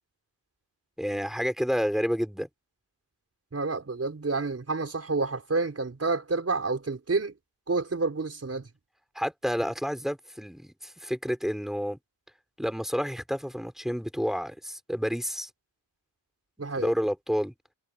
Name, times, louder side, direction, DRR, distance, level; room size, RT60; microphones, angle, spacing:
voice 1, 1.0-2.5 9.2-12.0 12.6-15.5 16.8-17.5, equal, ahead, 5.2 m, -29 dB
voice 2, 3.5-7.3 7.7-8.7 16.6-16.9, right 3 dB, 30° right, 4.7 m, -29 dB
wide cardioid pair, 120°, 46 cm